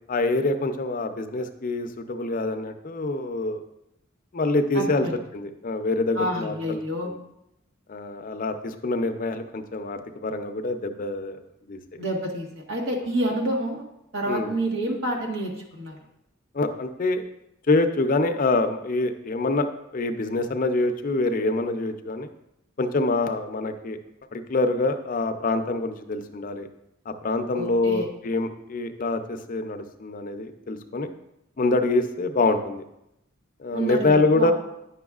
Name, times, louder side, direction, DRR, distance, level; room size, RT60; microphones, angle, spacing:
voice 1, 0.1-3.6 4.3-5.1 5.3-6.8 7.0-7.2 7.9-11.4 11.7-11.8 14.3-14.5 16.5-17.3 17.7-19.7 19.9-22.3 22.8-24.0 24.3-26.7 27.1-31.1 31.6-32.8 33.6-34.5, left 2 dB, 45° left, 6 dB, 0.5 m, -25 dB
voice 2, 4.7-5.1 6.1-7.1 12.0-13.8 14.1-16.0 27.5-28.1 33.7-34.5, right 1 dB, 85° right, 0 dB, 1.5 m, -28 dB
9.8 x 6.1 x 2.4 m, 0.84 s
head